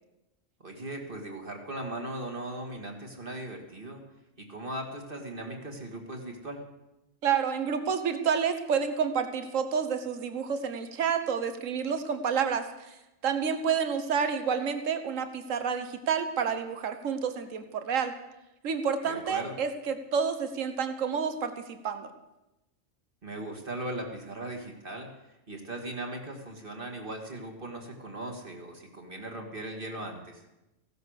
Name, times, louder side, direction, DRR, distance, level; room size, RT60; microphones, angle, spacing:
voice 1, 0.6-4.0 4.4-6.6 19.0-19.6 23.2-25.1 25.5-30.4, right 1 dB, 40° right, 2 dB, 2.3 m, -38 dB
voice 2, 7.2-13.0 13.2-18.1 18.6-22.1, right 6 dB, 75° right, 9 dB, 1.5 m, -29 dB
16.5 x 12.0 x 6.5 m, 0.96 s
omnidirectional pair, 1.4 m